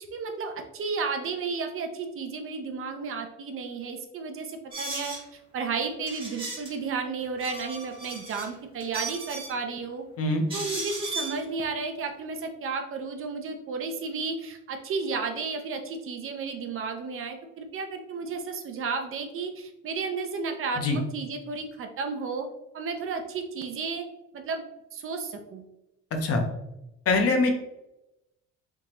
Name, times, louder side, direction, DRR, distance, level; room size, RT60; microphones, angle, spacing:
voice 1, 0.1-5.2 5.5-10.0 10.5-22.5 22.7-24.1 24.3-24.6 24.9-25.6, right 4 dB, 45° right, 5 dB, 0.5 m, -33 dB
sound 1, 4.7-5.2 6.1-6.7 7.2-8.5 8.8-9.6 10.5-11.4, right 2 dB, 15° right, 0.9 m, -36 dB
voice 2, 26.1-26.4 27.1-27.5, left 3 dB, 50° left, 4 dB, 0.7 m, -23 dB
3.5 x 2.8 x 2.9 m, 0.89 s
cardioid pair, 130°, 31 cm